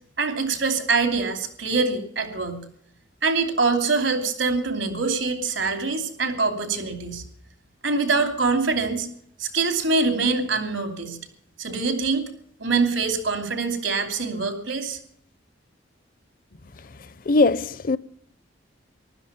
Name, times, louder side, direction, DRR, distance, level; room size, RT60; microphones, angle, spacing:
voice 1, 0.2-2.6 3.2-7.2 7.8-9.1 9.4-11.2 11.6-12.3 12.6-15.0, right 4 dB, 80° right, 2.8 m, -24 dB
voice 2, 17.3-18.0, left 3 dB, 45° left, 0.5 m, -20 dB
15.0 x 12.0 x 7.0 m
head